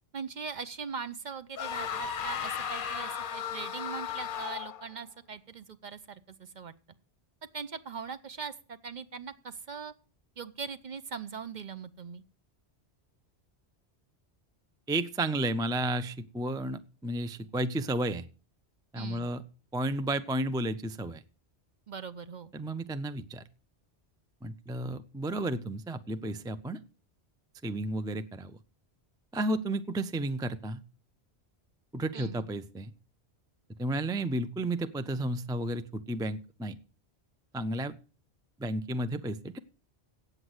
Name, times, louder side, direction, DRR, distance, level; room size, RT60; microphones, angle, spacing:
voice 1, 0.1-6.7 7.5-9.9 10.4-12.2 19.0-19.3 21.9-22.5 32.1-32.4, right 5 dB, 50° right, 12 dB, 0.7 m, -41 dB
sound 1, 1.6-4.9, left 8 dB, 55° left, 0.8 m, -35 dB
voice 2, 14.9-18.3 18.9-19.4 19.7-21.2 22.5-23.4 24.4-26.8 27.6-28.6 29.3-30.8 31.9-32.9 33.8-36.8 37.5-37.9 38.6-39.6, right 1 dB, 5° right, 11 dB, 0.4 m, -32 dB
8.9 x 8.0 x 7.9 m, 0.37 s
omnidirectional pair, 1.1 m